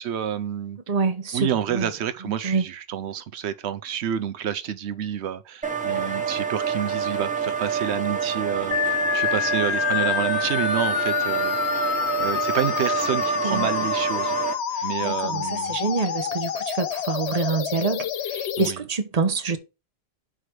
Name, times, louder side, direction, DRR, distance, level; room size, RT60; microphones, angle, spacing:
voice 1, 0.0-0.8 1.3-14.4 14.8-15.8 18.6-18.9, right 9 dB, 90° right, 1.0 m, -29 dB
voice 2, 0.9-1.9 2.4-2.6 13.4-13.7 14.8-19.6, right 4 dB, 40° right, 1.0 m, -26 dB
sound 1, 5.6-14.5, right 7 dB, 5° right, 1.3 m, -27 dB
sound 2, 8.7-18.7, left 9 dB, 85° left, 1.0 m, -27 dB
5.0 x 5.0 x 6.0 m
omnidirectional pair, 1.1 m